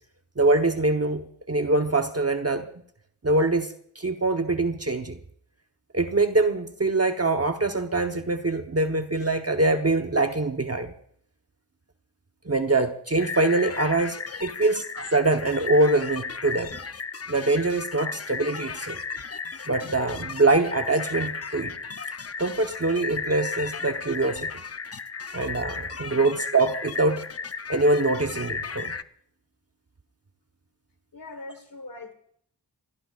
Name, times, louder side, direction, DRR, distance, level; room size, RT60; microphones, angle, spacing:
voice 1, 0.4-2.7 3.2-5.2 5.9-10.9 12.4-16.8 17.3-19.0 19.7-21.7 22.4-24.5 25.3-27.3 27.7-28.9, right 2 dB, 35° right, 5 dB, 1.0 m, -24 dB
sound 1, 13.2-29.0, left 5 dB, 35° left, 0.6 m, -35 dB
voice 2, 31.1-32.1, left 3 dB, 55° left, 7 dB, 1.6 m, -42 dB
26.0 x 18.0 x 2.4 m, 0.64 s
wide cardioid pair, 60°, 42 cm